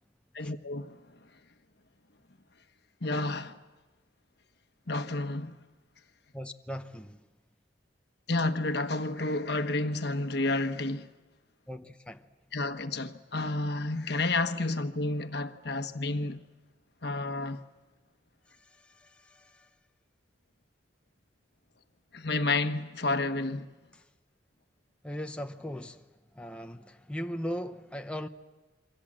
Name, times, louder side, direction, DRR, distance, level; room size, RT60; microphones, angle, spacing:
voice 1, 0.3-0.9 3.0-3.5 4.9-5.6 8.3-11.1 12.5-16.5 17.0-17.6 22.1-23.6, left 2 dB, 65° left, 1.2 m, -30 dB
voice 2, 6.3-7.2 11.7-12.2 18.9-19.6 25.0-26.0 26.4-28.3, equal, 5° left, 0.8 m, -38 dB
27.5 x 24.0 x 7.6 m
head